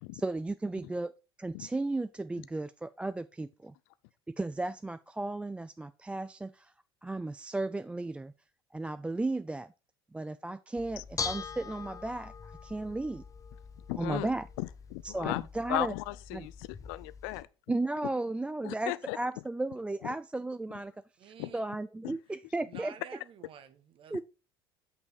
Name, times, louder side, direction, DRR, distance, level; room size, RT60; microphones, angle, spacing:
voice 1, 0.1-1.1 1.4-3.7 4.4-6.7 7.0-8.3 8.7-9.7 10.1-13.2 14.0-14.5 15.0-15.9 16.3-16.5 17.7-20.9 21.2-22.9 24.1-24.2, right 2 dB, 10° right, 0.3 m, -35 dB
Bell / Dishes pots and pans, 10.8-17.4, left 5 dB, 25° left, 0.7 m, -43 dB
voice 2, 13.9-14.3 14.6-17.5 18.6-19.2 20.0-20.1 21.4-21.5 22.0-22.1, left 19 dB, 65° left, 0.4 m, -36 dB
voice 3, 21.2-21.7 22.6-24.2, right 8 dB, 45° right, 1.1 m, -50 dB
6.2 x 5.4 x 4.9 m
hypercardioid pair, 70°, 13 cm